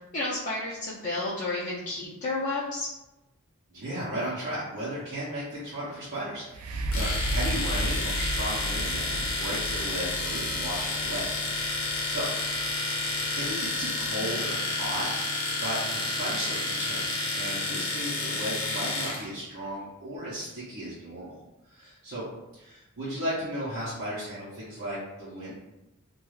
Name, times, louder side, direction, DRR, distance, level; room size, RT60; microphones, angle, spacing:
voice 1, 0.1-2.9 14.2-14.3, left 2 dB, 35° left, -8 dB, 0.5 m, -31 dB
voice 2, 3.7-11.3 11.8-12.3 12.9-15.1 15.4-21.4 21.7-22.2 22.5-25.5, equal, 60° right, -9 dB, 0.7 m, -35 dB
sound 1, 6.5-14.2 14.9-15.0, right 1 dB, 85° right, 0.3 m, -34 dB
Domestic sounds home sounds, 6.9-19.2, left 2 dB, 75° left, 0.7 m, -30 dB
2.3 x 2.2 x 3.1 m, 0.96 s
head